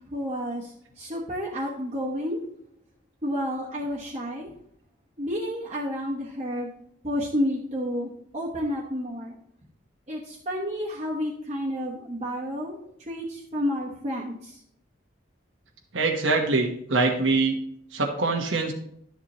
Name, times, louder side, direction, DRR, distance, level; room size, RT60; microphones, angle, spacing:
voice 1, 0.0-2.4 3.2-4.5 5.2-6.7 7.0-9.4 10.1-12.8 13.1-14.6, equal, 35° right, -4 dB, 1.2 m, -30 dB
voice 2, 15.9-17.6 17.9-18.7, right 3 dB, 85° right, 1 dB, 1.2 m, -24 dB
11.5 x 7.2 x 3.1 m, 0.68 s
head